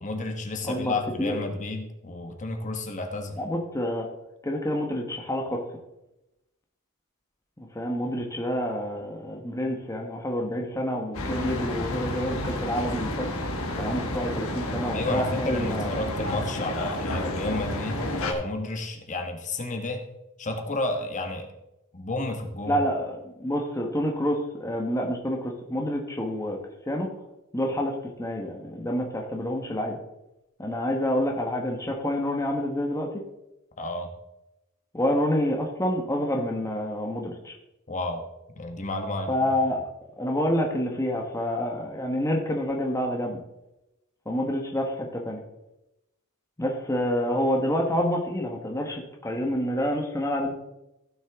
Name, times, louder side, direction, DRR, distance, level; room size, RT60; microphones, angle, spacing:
voice 1, 0.0-3.4 14.9-20.1 20.4-21.5 21.9-22.8 33.8-34.1 37.9-38.3 38.6-39.5, left 2 dB, 35° left, 4 dB, 1.2 m, -31 dB
voice 2, 0.7-1.4 3.4-4.1 4.4-5.6 7.6-13.3 13.8-15.9 22.7-26.6 26.9-27.1 27.5-30.0 30.6-33.2 34.9-37.5 39.3-39.8 40.2-43.4 44.3-45.4 46.6-50.5, equal, 15° left, 1 dB, 1.1 m, -28 dB
sound 1, 11.1-18.3, left 1 dB, 70° left, 1.5 m, -31 dB
16.0 x 6.3 x 3.5 m, 0.92 s
head